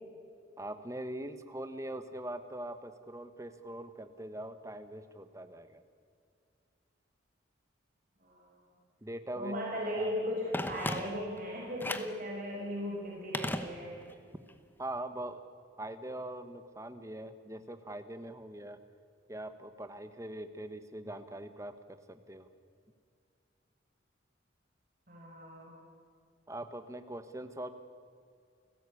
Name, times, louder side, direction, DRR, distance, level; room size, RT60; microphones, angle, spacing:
voice 1, 0.6-5.8 9.0-9.5 10.0-10.1 14.8-15.4 15.8-18.8 19.3-21.7 22.1-22.5 26.5-27.7, right 1 dB, 15° right, 9 dB, 1.3 m, -42 dB
voice 2, 8.2-8.6 9.4-14.0 25.1-25.7, equal, 45° right, -3 dB, 5.3 m, -37 dB
Telephone, 10.5-11.4 11.8-12.2 13.3-14.2 14.5-14.6, left 1 dB, 10° left, 1.0 m, -36 dB
29.5 x 16.0 x 8.5 m, 2.3 s
head